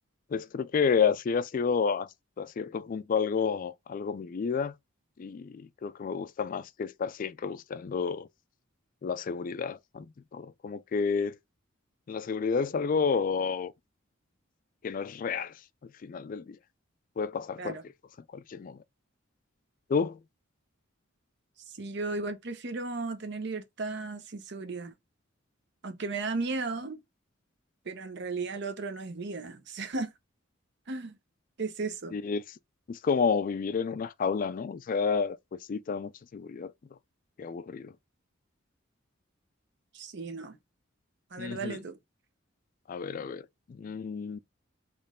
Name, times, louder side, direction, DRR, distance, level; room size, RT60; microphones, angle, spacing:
voice 1, 0.3-2.1 2.4-4.7 5.2-8.3 9.0-10.1 10.3-11.4 12.1-13.7 14.8-15.5 16.0-16.6 17.2-17.8 18.3-18.8 19.9-20.2 32.1-32.4 32.9-36.7 37.4-37.9 41.4-41.8 42.9-44.4, left 5 dB, 45° left, 0.3 m, -30 dB
voice 2, 21.7-24.9 25.8-27.0 27.9-30.1 30.9-31.2 31.6-32.2 39.9-40.6 41.3-42.0, right 3 dB, 60° right, 0.8 m, -35 dB
4.3 x 3.1 x 3.6 m
head